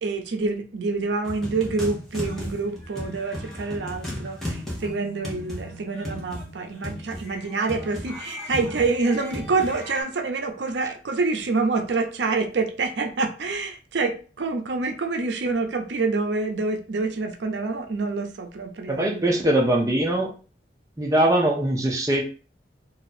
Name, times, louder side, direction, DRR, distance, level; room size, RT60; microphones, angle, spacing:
voice 1, 0.0-19.3, right 3 dB, 85° right, 6 dB, 0.5 m, -27 dB
sound 1, 1.2-10.0, equal, ahead, 0.9 m, -35 dB
sound 2, 4.8-9.1, right 2 dB, 35° left, 1.0 m, -48 dB
voice 2, 18.9-20.3 21.0-22.2, right 1 dB, 20° right, -1 dB, 0.6 m, -21 dB
2.7 x 2.4 x 4.1 m, 0.37 s
head